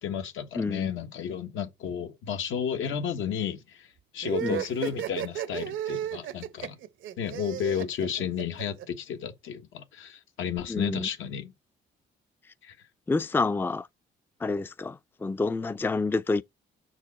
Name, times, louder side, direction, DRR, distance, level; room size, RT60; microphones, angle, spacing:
voice 1, 0.0-3.9 4.1-6.8 7.2-11.5 12.6-12.8, left 8 dB, 80° left, 1.3 m, -32 dB
voice 2, 0.5-0.9 4.4-4.6 10.7-11.1 13.1-13.9 14.4-16.4, left 3 dB, 10° left, 0.4 m, -28 dB
sound 1, 4.2-8.8, right 11 dB, 75° right, 0.8 m, -33 dB
6.5 x 4.7 x 4.2 m
cardioid pair, 90°, 20 cm